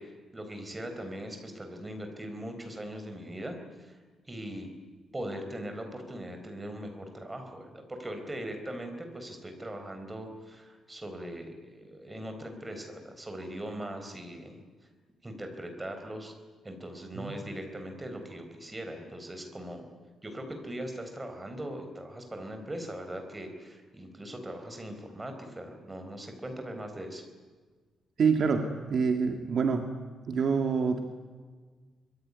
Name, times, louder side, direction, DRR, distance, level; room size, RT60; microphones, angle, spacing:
voice 1, 0.0-4.0 4.2-4.7 5.1-14.6 15.2-16.3 16.6-19.8 20.2-27.3, right 1 dB, 10° right, 5 dB, 4.3 m, -40 dB
voice 2, 28.2-29.9 30.3-31.0, right 5 dB, 45° right, 5 dB, 2.0 m, -26 dB
25.0 x 22.5 x 9.7 m, 1.4 s
cardioid pair, 170°, 0 cm